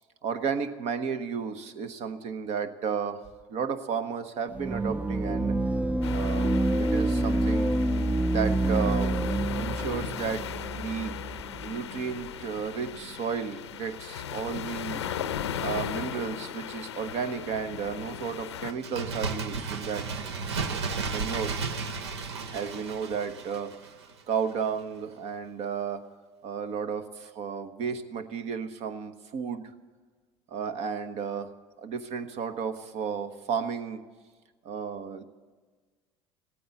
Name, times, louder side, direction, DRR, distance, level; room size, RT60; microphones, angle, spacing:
voice 1, 0.2-3.2 3.5-5.6 6.1-7.7 8.3-9.2 9.6-10.5 10.8-11.2 11.6-15.0 15.6-20.1 20.5-21.5 22.5-23.7 24.3-26.1 26.4-29.6 30.5-31.5 31.8-34.0 34.6-35.2, right 6 dB, 55° right, 10 dB, 1.2 m, -33 dB
sound 1, 4.6-11.7, right 1 dB, 10° right, 0.4 m, -27 dB
sound 2, 6.0-18.7, left 9 dB, 90° left, 0.6 m, -37 dB
Bird, 18.7-24.2 24.5-24.6, right 4 dB, 85° right, 0.9 m, -34 dB
16.0 x 9.3 x 8.3 m, 1.4 s
hypercardioid pair, 80°, 14 cm